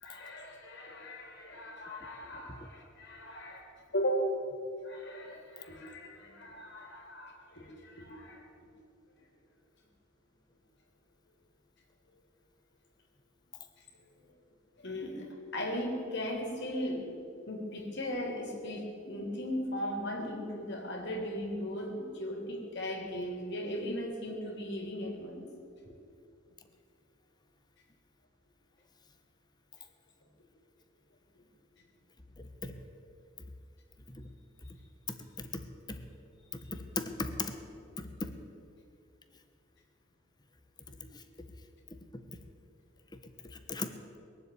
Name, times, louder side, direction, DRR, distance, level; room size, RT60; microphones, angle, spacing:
voice 1, 0.0-4.3 4.8-8.4 14.8-17.1 17.5-25.5 25.8-25.9 40.9-41.0, equal, 60° left, 1 dB, 3.2 m, -37 dB
voice 2, 36.9-37.5 38.0-38.3 41.1-41.2 43.4-43.9, left 3 dB, 20° left, 7 dB, 1.2 m, -37 dB
21.5 x 7.8 x 8.6 m, 2.4 s
head